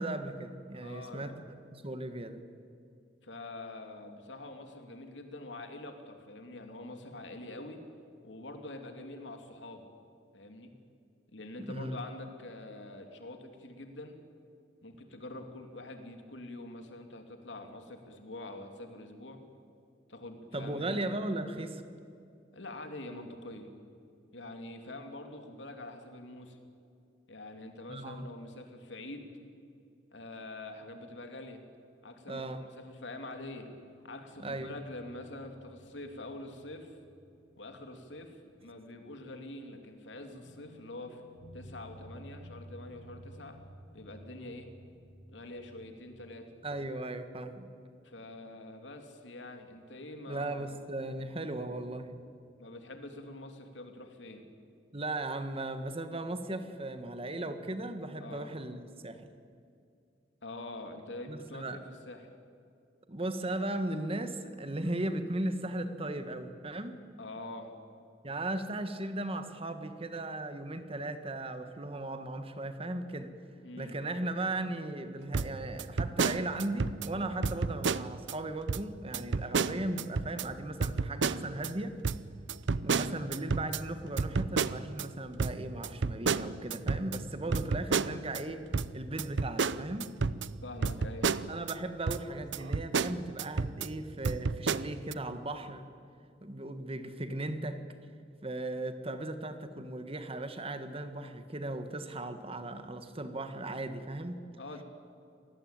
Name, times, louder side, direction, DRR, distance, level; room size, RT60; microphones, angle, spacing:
voice 1, 0.0-2.4 11.6-12.0 20.5-21.8 27.9-28.3 32.3-32.6 34.4-34.7 46.6-47.7 50.3-52.2 54.9-59.3 61.3-61.8 63.1-67.0 68.2-73.3 73.8-81.9 82.8-88.6 88.9-90.1 91.5-95.9 96.4-97.8 98.4-104.4, right 2 dB, 30° right, 9 dB, 1.6 m, -37 dB
voice 2, 0.8-1.3 3.2-7.8 8.2-9.8 10.3-10.7 11.3-14.2 14.8-19.4 20.1-21.0 22.5-23.7 24.3-26.6 27.3-29.3 30.1-31.6 32.0-33.7 34.0-37.0 37.6-41.2 41.5-43.6 43.9-44.7 45.3-46.4 48.0-50.7 52.6-54.4 58.2-58.5 60.4-62.3 67.2-67.7 73.6-73.9 79.2-79.5 90.6-91.3 104.6-104.8, left 2 dB, 90° left, 5 dB, 2.9 m, -45 dB
sound 1, 33.3-38.8 39.1-39.2 40.4-46.9, equal, 30° left, 7.1 m, -54 dB
sound 2, 75.3-77.1 77.4-78.3 78.7-78.8 79.1-80.5 80.8-81.7 82.0-85.1 85.4-88.4 88.7-91.8 92.1-92.2 92.5-93.9 94.2-95.1, right 4 dB, 80° right, 0.7 m, -31 dB
26.5 x 19.5 x 9.0 m, 2.4 s
head